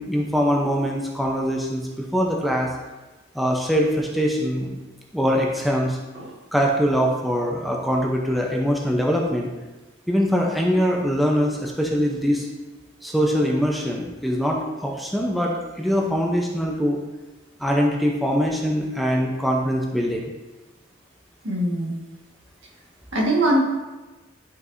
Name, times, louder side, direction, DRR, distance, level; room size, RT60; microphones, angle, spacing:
voice 1, 0.0-2.7 3.3-4.8 5.1-6.0 6.5-9.5 10.1-12.5 13.0-17.0 17.6-20.2, equal, ahead, -2 dB, 0.7 m, -23 dB
voice 2, 21.4-22.0 23.1-23.6, right 1 dB, 75° right, -3 dB, 1.7 m, -22 dB
11.0 x 4.6 x 2.7 m, 1.1 s
head